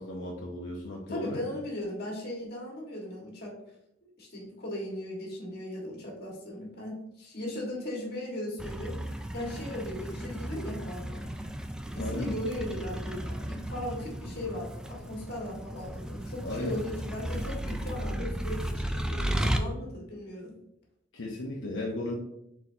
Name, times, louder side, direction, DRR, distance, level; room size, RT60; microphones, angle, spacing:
voice 1, 0.0-1.4 12.0-12.3 16.4-16.8 21.1-22.1, left 1 dB, 85° left, -3 dB, 0.8 m, -35 dB
voice 2, 1.1-3.6 4.0-11.4 11.9-20.5, left 1 dB, 60° left, -2 dB, 1.6 m, -38 dB
sound 1, 8.6-19.6, right 1 dB, 5° right, 0.3 m, -35 dB
4.5 x 4.2 x 2.8 m, 0.79 s
head